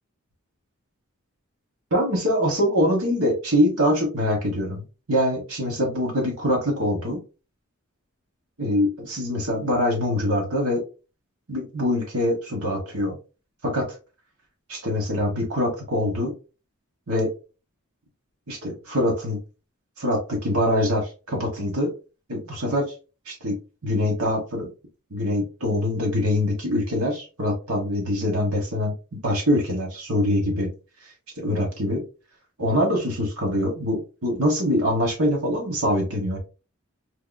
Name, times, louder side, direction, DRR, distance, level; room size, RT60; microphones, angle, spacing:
voice 1, 1.9-7.2 8.6-10.8 11.5-13.2 13.6-13.9 14.7-16.3 17.1-17.3 18.5-19.4 20.0-21.9 22.3-22.8 23.3-23.6 23.8-24.7 25.1-28.9 29.2-30.7 31.4-32.0 32.6-36.4, left 1 dB, 90° right, 0 dB, 1.2 m, -24 dB
4.6 x 2.5 x 2.2 m, 0.31 s
head